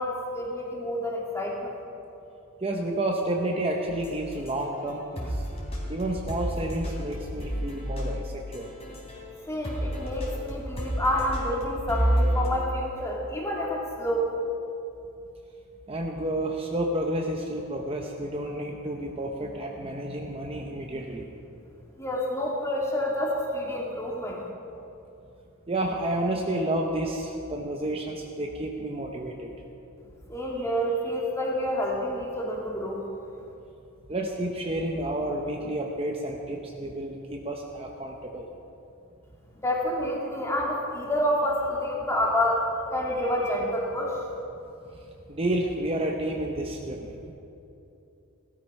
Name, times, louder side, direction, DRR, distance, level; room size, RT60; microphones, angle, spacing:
voice 1, 0.0-1.7 9.5-14.3 22.0-24.4 30.3-33.0 39.6-42.7 42.9-44.2, equal, 15° left, -2 dB, 2.3 m, -28 dB
voice 2, 2.6-5.4 5.9-8.7 15.9-21.3 25.7-29.5 34.1-38.5 45.3-47.3, right 1 dB, 25° right, 1 dB, 0.9 m, -30 dB
sound 1, 3.9-9.4 9.6-12.5, equal, 30° left, 3.4 m, -30 dB
16.5 x 13.0 x 5.5 m, 2.8 s
head